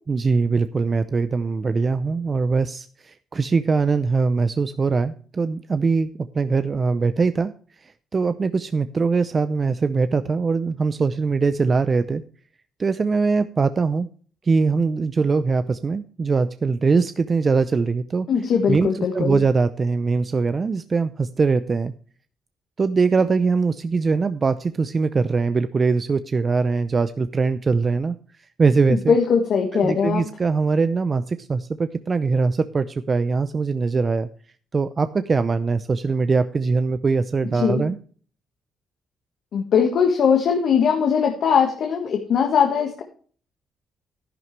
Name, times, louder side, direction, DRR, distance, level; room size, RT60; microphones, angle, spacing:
voice 1, 0.1-6.1 6.3-7.5 8.1-12.2 12.8-14.1 14.5-18.3 18.7-21.9 22.8-28.2 28.6-29.2 29.7-34.3 34.7-38.0, right 4 dB, 35° right, 11 dB, 0.6 m, -22 dB
voice 2, 18.3-19.4 28.9-30.2 37.5-37.9 39.5-43.0, left 6 dB, 65° left, 3 dB, 1.6 m, -20 dB
11.0 x 11.0 x 3.3 m, 0.44 s
cardioid pair, 90°, 0 cm